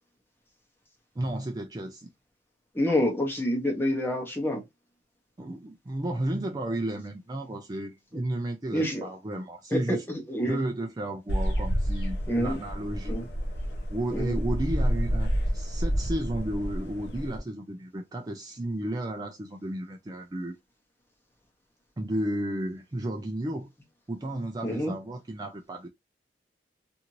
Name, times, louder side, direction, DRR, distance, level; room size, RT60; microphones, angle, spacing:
voice 1, 1.2-2.1 5.4-10.0 10.5-13.2 13.9-20.5 22.0-23.7 24.1-25.9, right 1 dB, 20° right, 0.4 m, -33 dB
voice 2, 2.7-4.6 8.7-9.1 9.7-10.6 12.3-12.6 13.1-13.2 14.1-14.4 24.6-24.9, left 1 dB, 15° left, 0.8 m, -27 dB
sound 1, 11.3-17.4, equal, 90° left, 0.8 m, -29 dB
2.7 x 2.5 x 2.9 m
head